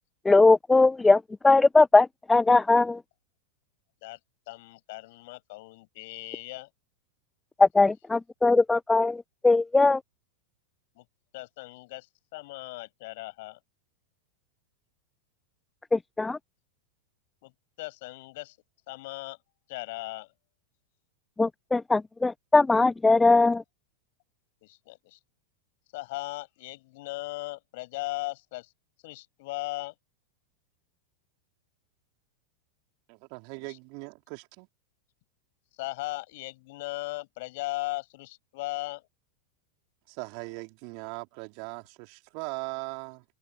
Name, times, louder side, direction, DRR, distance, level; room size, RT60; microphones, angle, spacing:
voice 1, 0.3-3.0 7.6-9.2 9.4-10.0 15.9-16.4 21.4-23.6, left 3 dB, 10° left, 0.3 m, -20 dB
voice 2, 4.5-6.7 10.9-11.1 11.3-13.6 17.4-17.5 17.8-18.6 18.9-19.4 19.7-20.3 24.6-25.2 25.9-28.7 29.0-29.9 33.6-33.8 35.8-39.1, left 22 dB, 50° left, 7.9 m, -37 dB
voice 3, 33.1-34.7 40.1-43.2, right 40 dB or more, 45° right, 3.5 m, -39 dB
figure-of-eight pair, 90°, 0 cm